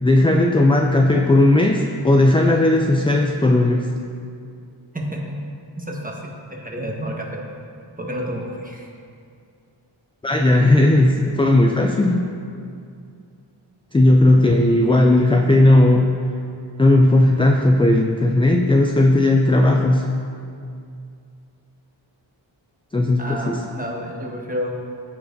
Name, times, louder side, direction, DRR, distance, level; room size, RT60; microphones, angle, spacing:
voice 1, 0.0-3.9 10.2-12.2 13.9-16.1 16.8-20.1 22.9-23.6, left 1 dB, 10° left, 2 dB, 0.3 m, -16 dB
voice 2, 4.9-5.4 5.8-7.4 8.0-8.9 23.2-24.7, equal, 15° right, -1 dB, 1.2 m, -30 dB
14.0 x 4.7 x 2.6 m, 2.4 s
wide cardioid pair, 50°, 48 cm